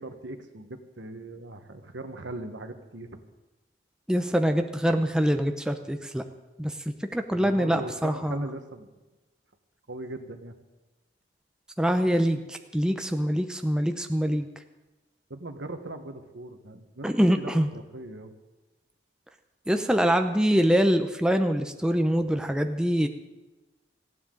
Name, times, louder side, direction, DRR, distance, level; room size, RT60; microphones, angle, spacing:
voice 1, 0.0-3.2 7.3-8.9 9.9-10.5 15.3-18.3, right 2 dB, 85° right, 7 dB, 1.3 m, -39 dB
voice 2, 4.1-6.2 6.6-6.7 7.0-8.4 11.8-14.5 17.0-17.7 19.7-23.1, equal, 5° right, 6 dB, 0.6 m, -24 dB
19.0 x 15.5 x 3.9 m, 1.1 s
head